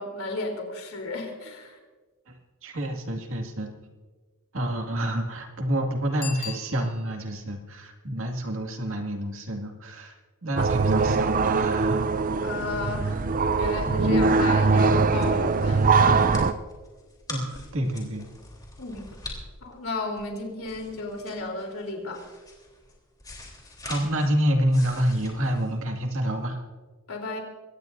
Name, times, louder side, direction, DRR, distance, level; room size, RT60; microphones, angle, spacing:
voice 1, 0.0-1.8 10.6-10.7 12.4-13.3 13.6-16.2 18.8-19.1 19.6-22.2 27.1-27.4, left 2 dB, 70° left, 2 dB, 3.7 m, -33 dB
voice 2, 2.6-3.7 4.5-10.1 10.4-12.1 17.3-18.3 23.8-26.6, equal, 65° right, 2 dB, 2.2 m, -28 dB
Bicycle bell, 6.2-7.4 12.8-12.9, left 7 dB, 50° left, 4.8 m, -38 dB
sound 1, 10.6-16.5, right 4 dB, 40° right, 0.6 m, -22 dB
sound 2, 14.7-26.4, left 2 dB, 20° left, 3.6 m, -44 dB
23.0 x 18.0 x 2.7 m, 1.4 s
head